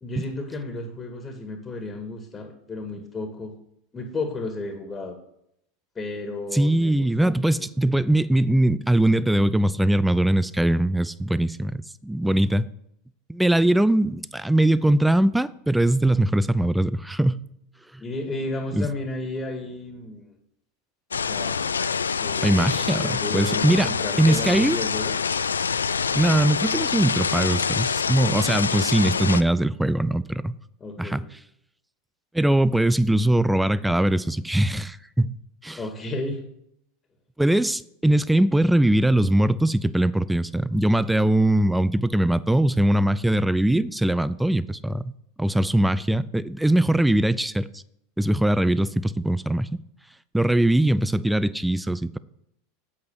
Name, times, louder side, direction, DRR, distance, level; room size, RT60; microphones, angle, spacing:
voice 1, 0.0-3.5 3.9-5.2 6.0-7.7 18.0-20.3 21.2-21.6 22.2-25.1 30.8-31.2 35.8-36.4, left 2 dB, 20° left, 2.0 m, -33 dB
voice 2, 6.5-12.7 13.3-17.4 18.7-18.9 22.4-23.9 24.2-24.8 26.1-30.6 31.0-31.2 32.3-35.4 35.6-35.8 37.4-45.1 45.4-47.8 48.2-49.8 50.3-52.2, right 1 dB, 5° right, 0.5 m, -21 dB
sound 1, 21.1-29.4, left 6 dB, 85° left, 0.4 m, -26 dB
8.6 x 8.0 x 6.6 m
figure-of-eight pair, 85°, 0 cm